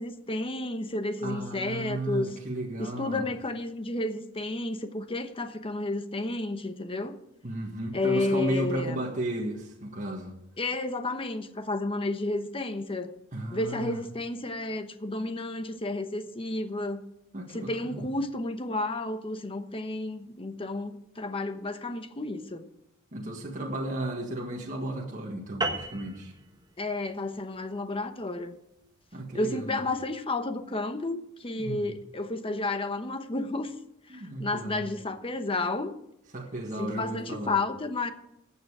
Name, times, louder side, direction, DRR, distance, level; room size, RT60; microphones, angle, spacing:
voice 1, 0.0-2.3 2.8-7.2 7.9-9.0 10.6-13.1 13.5-17.0 17.5-22.7 26.8-28.6 29.3-33.7 34.1-35.9 36.8-38.1, left 2 dB, 25° left, 1.0 m, -31 dB
voice 2, 1.2-3.2 7.4-10.4 13.3-14.0 17.3-18.0 23.1-26.3 29.1-29.8 31.6-31.9 34.1-34.9 36.3-37.6, right 1 dB, 40° right, 1.7 m, -34 dB
sound 1, 25.6-30.3, right 2 dB, 20° right, 1.2 m, -37 dB
14.5 x 8.7 x 4.9 m
head